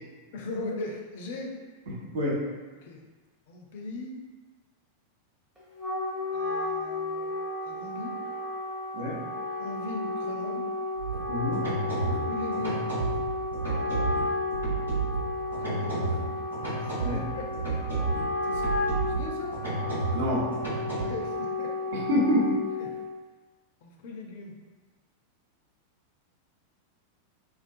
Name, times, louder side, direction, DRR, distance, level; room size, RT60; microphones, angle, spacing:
voice 1, 0.3-1.5 2.8-3.0 3.5-4.2 6.3-7.3 7.6-8.1 9.6-10.6 12.3-12.8 15.1-16.3 16.8-17.5 18.4-18.6 19.0-19.6 20.8-21.7 22.8-23.0 23.8-24.5, left 3 dB, 55° left, 1 dB, 0.4 m, -39 dB
voice 2, 1.9-2.4 8.9-9.2 11.3-11.7 11.9-12.2 17.0-17.2 20.1-20.5 21.9-22.5, left 1 dB, 55° right, -4 dB, 0.6 m, -27 dB
Wind instrument woodwind instrument, 5.6-23.0, left 2 dB, 10° right, 0.7 m, -33 dB
sound 1, 11.0-21.0, right 3 dB, 80° right, 1.3 m, -32 dB
2.3 x 2.3 x 2.5 m, 1.3 s
figure-of-eight pair, 90°, 0 cm